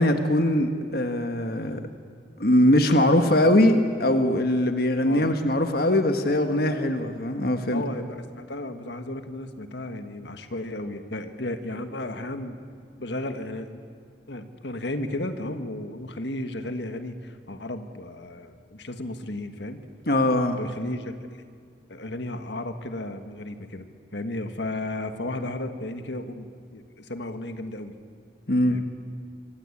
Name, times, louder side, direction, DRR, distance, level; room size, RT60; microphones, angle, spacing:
voice 1, 0.0-1.8 2.4-7.8 20.1-20.6 28.5-28.8, left 1 dB, 55° left, 6 dB, 1.5 m, -21 dB
voice 2, 5.0-5.4 7.7-12.6 13.0-13.8 14.3-19.8 20.5-21.4 21.9-23.9 24.1-27.9 28.7-28.8, left 1 dB, 70° left, 8 dB, 1.6 m, -34 dB
25.5 x 25.5 x 8.6 m, 2.1 s
head